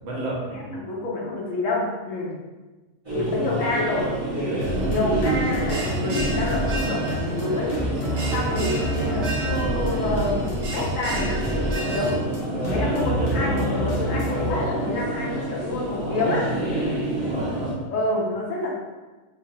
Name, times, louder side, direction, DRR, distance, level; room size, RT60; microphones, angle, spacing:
voice 1, 0.0-0.7 3.1-3.5 5.1-5.4 8.8-9.1 13.0-13.2 17.2-17.7, right 1 dB, 70° right, -4 dB, 1.3 m, -34 dB
voice 2, 0.6-2.3 3.1-4.1 4.8-7.7 8.3-12.2 12.7-16.5 17.9-18.7, left 2 dB, 75° left, -4 dB, 1.2 m, -28 dB
sound 1, 3.0-17.7, right 1 dB, 20° right, 1.1 m, -28 dB
sound 2, 4.6-14.5, equal, 55° left, 0.9 m, -29 dB
Bell, 4.6-12.1, right 3 dB, 50° right, 0.9 m, -34 dB
3.2 x 3.1 x 2.7 m, 1.2 s
omnidirectional pair, 1.3 m